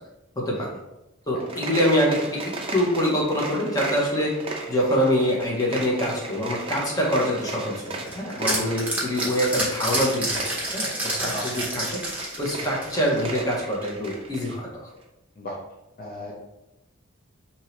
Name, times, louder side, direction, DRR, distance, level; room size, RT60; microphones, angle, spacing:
voice 1, 0.4-0.7 1.3-2.4 2.7-4.3 4.7-14.7, equal, 15° left, -3 dB, 0.8 m, -25 dB
sound 1, 1.3-14.6, right 2 dB, 25° right, 0.5 m, -36 dB
sound 2, 7.8-13.3, right 1 dB, 5° right, 0.9 m, -29 dB
voice 2, 11.3-11.7 15.4-15.6 16.0-16.4, left 1 dB, 40° left, -3 dB, 0.5 m, -36 dB
2.9 x 2.7 x 4.4 m, 0.93 s
head